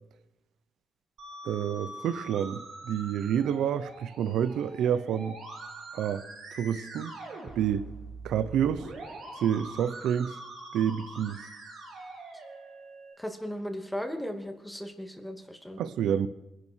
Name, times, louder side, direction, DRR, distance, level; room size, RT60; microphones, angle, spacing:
Musical instrument, 1.2-13.1, right 2 dB, 65° right, 6.5 m, -44 dB
voice 1, 1.4-5.4 5.9-7.1 7.6-7.9 8.2-8.9 9.4-10.3 10.7-11.5 15.8-16.3, right 9 dB, 90° right, 0.9 m, -28 dB
voice 2, 13.2-15.8, equal, 5° left, 2.6 m, -36 dB
26.5 x 11.5 x 4.6 m
cardioid pair, 130°, 0 cm